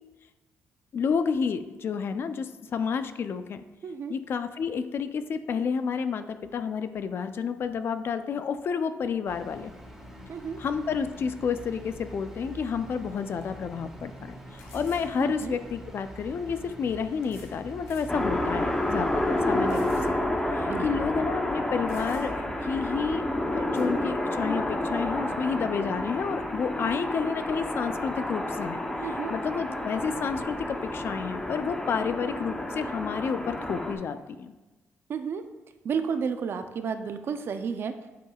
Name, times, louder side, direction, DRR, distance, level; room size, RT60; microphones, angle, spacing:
voice 1, 0.9-3.6 4.1-9.7 10.6-20.1 20.5-23.3 23.5-28.8 29.3-34.5, left 6 dB, 55° left, 10 dB, 0.4 m, -30 dB
voice 2, 3.8-4.2 10.3-10.6 15.2-15.6 20.6-21.1 29.0-29.3 35.1-35.4 35.8-37.9, right 6 dB, 55° right, 9 dB, 0.5 m, -32 dB
sound 1, 9.3-20.0, right 1 dB, 5° right, 1.3 m, -45 dB
sound 2, 13.4-13.5 14.6-15.1 16.2-16.3 17.2-17.6 17.9-18.1 18.7-18.8 19.7-20.1 20.5-20.6 21.5-21.6 21.9-22.5 23.7-23.9, left 4 dB, 80° left, 1.2 m, -52 dB
sound 3, 18.1-34.0, left 1 dB, 10° left, 0.7 m, -30 dB
9.1 x 4.7 x 2.3 m, 1.1 s
cardioid pair, 90°, 5 cm